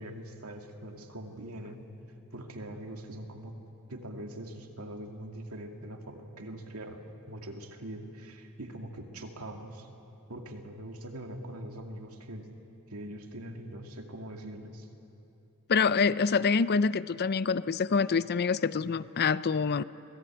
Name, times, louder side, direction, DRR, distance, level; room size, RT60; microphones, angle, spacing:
voice 1, 0.0-1.9 2.3-3.6 3.9-9.9 10.3-12.5 12.9-14.9, right 1 dB, 80° right, 3 dB, 2.3 m, -42 dB
voice 2, 15.7-19.8, left 5 dB, 50° left, 16 dB, 0.5 m, -26 dB
25.5 x 18.5 x 8.9 m, 2.8 s
head